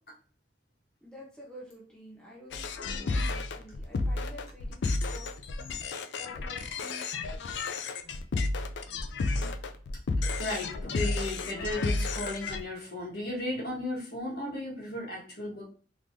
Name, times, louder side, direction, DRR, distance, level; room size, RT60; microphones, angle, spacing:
voice 1, 1.0-5.3 6.1-7.3, left 1 dB, 5° left, -5 dB, 0.7 m, -49 dB
sound 1, 2.5-12.6, left 3 dB, 75° left, 0.4 m, -32 dB
voice 2, 10.4-15.7, left 1 dB, 60° left, -2 dB, 1.3 m, -35 dB
3.5 x 3.1 x 2.5 m, 0.41 s
head